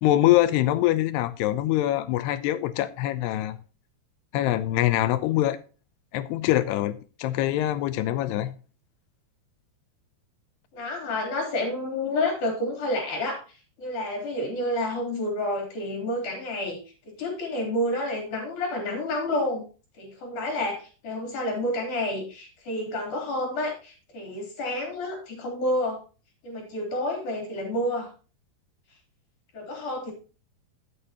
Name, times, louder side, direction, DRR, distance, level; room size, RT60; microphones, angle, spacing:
voice 1, 0.0-3.6 4.3-5.6 6.1-8.6, left 14 dB, 85° left, 2.8 m, -24 dB
voice 2, 10.7-13.4 13.8-16.8 17.2-19.6 20.0-26.0 26.4-28.1 29.5-30.1, left 1 dB, 50° left, 4.8 m, -29 dB
13.0 x 8.6 x 2.9 m
omnidirectional pair, 4.7 m